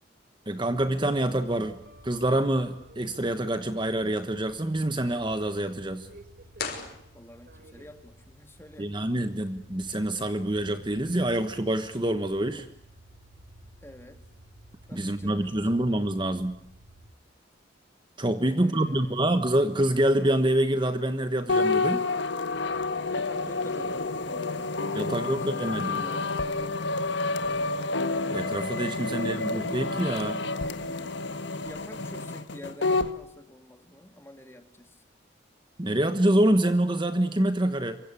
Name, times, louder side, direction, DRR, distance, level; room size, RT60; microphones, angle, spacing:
voice 1, 0.5-1.8 2.0-6.1 8.8-12.7 14.9-16.6 18.2-22.0 24.9-26.0 28.3-30.5 35.8-38.0, right 1 dB, 25° right, 9 dB, 1.2 m, -26 dB
sound 1, 0.7-17.1, right 1 dB, 55° right, 3.3 m, -53 dB
sound 2, 6.5-7.7, left 5 dB, 50° left, 5.7 m, -37 dB
voice 2, 7.1-8.9 13.8-14.2 14.9-16.0 18.4-19.2 23.1-26.4 29.0-29.6 31.5-35.0, left 1 dB, 15° left, 6 dB, 2.6 m, -48 dB
sound 3, 21.5-33.1, left 3 dB, 65° left, 1.5 m, -29 dB
28.0 x 25.0 x 8.5 m, 0.71 s
head